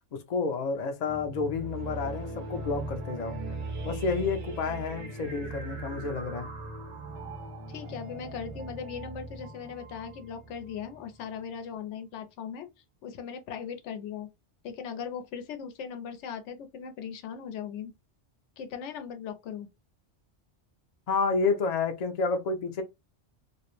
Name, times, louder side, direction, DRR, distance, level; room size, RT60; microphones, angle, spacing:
voice 1, 0.1-3.4 3.8-6.5 21.1-22.8, left 4 dB, 50° left, 0.5 m, -30 dB
sound 1, 1.1-11.3, right 2 dB, 45° right, 0.6 m, -39 dB
voice 2, 7.7-12.7 13.0-14.3 14.6-17.9 18.6-19.7, left 7 dB, 85° left, 0.9 m, -39 dB
2.5 x 2.0 x 3.0 m
omnidirectional pair, 1.2 m